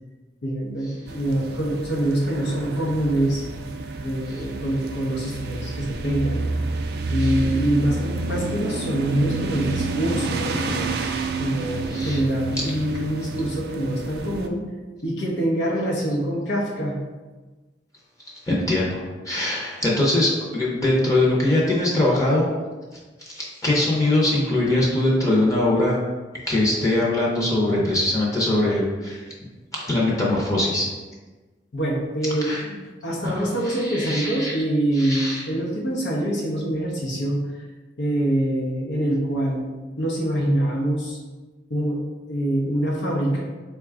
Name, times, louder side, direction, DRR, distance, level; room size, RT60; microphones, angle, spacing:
voice 1, 0.4-3.4 4.0-6.4 7.1-10.9 11.4-14.6 15.0-17.0 31.7-37.4 38.0-41.2 41.7-42.0 42.3-43.4, right 1 dB, 80° left, -3 dB, 0.7 m, -25 dB
sound 1, 1.1-14.5, right 3 dB, 60° right, 0.3 m, -29 dB
voice 2, 11.9-12.2 18.5-22.5 23.2-26.0 26.5-29.2 29.7-30.9 32.4-32.6 33.2-34.5 34.9-35.4, left 1 dB, 20° left, -4 dB, 0.7 m, -22 dB
3.9 x 2.3 x 3.5 m, 1.3 s
head